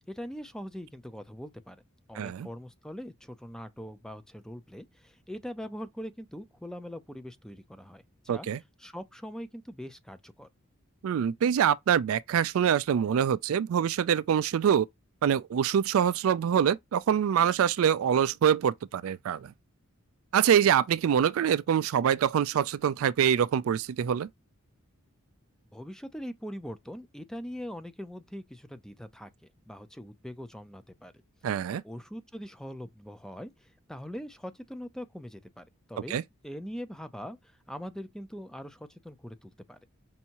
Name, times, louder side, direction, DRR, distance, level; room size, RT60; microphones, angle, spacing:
voice 1, 0.0-1.8 2.1-8.5 8.8-10.5 25.7-29.3 29.6-31.1 31.8-39.8, equal, 5° left, 0.4 m, -42 dB
voice 2, 2.2-2.5 8.3-8.6 11.0-14.9 15.2-19.5 20.3-24.3 31.4-31.8 36.1-36.2, right 8 dB, 75° right, 0.3 m, -25 dB
5.5 x 2.7 x 2.8 m
head